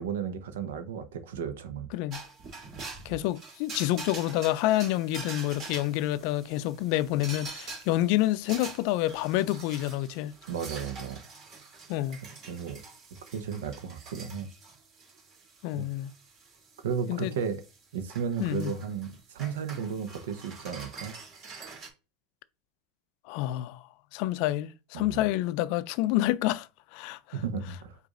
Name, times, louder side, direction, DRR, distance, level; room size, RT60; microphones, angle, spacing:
voice 1, 0.0-1.9 10.5-11.2 12.5-12.8 13.3-14.5 15.7-15.8 16.8-17.6 17.9-21.1 24.9-25.2 27.3-28.0, right 7 dB, 75° right, 0.8 m, -34 dB
voice 2, 1.9-2.2 3.0-10.3 11.9-12.2 15.6-16.1 17.1-17.3 18.4-18.7 23.3-23.8 24.1-27.4, left 15 dB, 60° left, 0.4 m, -28 dB
sound 1, 2.1-21.9, right 3 dB, 45° right, 2.1 m, -45 dB
4.9 x 2.5 x 3.8 m
hypercardioid pair, 100°, 0 cm